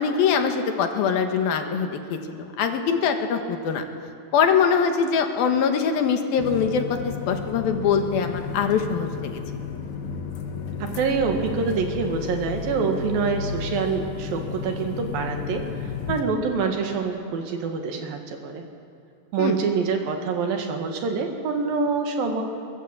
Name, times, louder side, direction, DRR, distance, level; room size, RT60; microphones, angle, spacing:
voice 1, 0.0-3.8 4.3-9.4 19.4-19.6, left 6 dB, 85° left, 5 dB, 3.4 m, -23 dB
sound 1, 6.4-16.2, left 5 dB, 60° left, 2.9 m, -32 dB
voice 2, 10.8-18.6 19.3-22.4, right 5 dB, 75° right, 4 dB, 3.6 m, -26 dB
23.5 x 20.0 x 7.5 m, 2.5 s
omnidirectional pair, 4.1 m